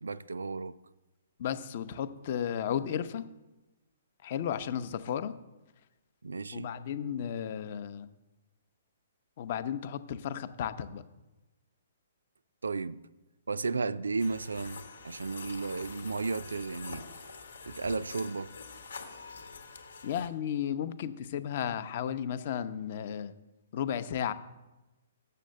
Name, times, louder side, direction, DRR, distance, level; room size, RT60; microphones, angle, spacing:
voice 1, 0.0-0.8 6.2-6.7 12.6-13.0 13.5-17.0 17.6-18.5, right 4 dB, 85° right, 0.3 m, -34 dB
voice 2, 1.4-3.3 4.2-5.4 6.5-8.1 9.4-11.0 20.0-23.3 23.7-24.3, left 9 dB, 50° left, 0.6 m, -34 dB
sound 1, 14.2-20.3, left 4 dB, 80° left, 1.1 m, -46 dB
6.8 x 6.7 x 6.4 m
hypercardioid pair, 130°, 0 cm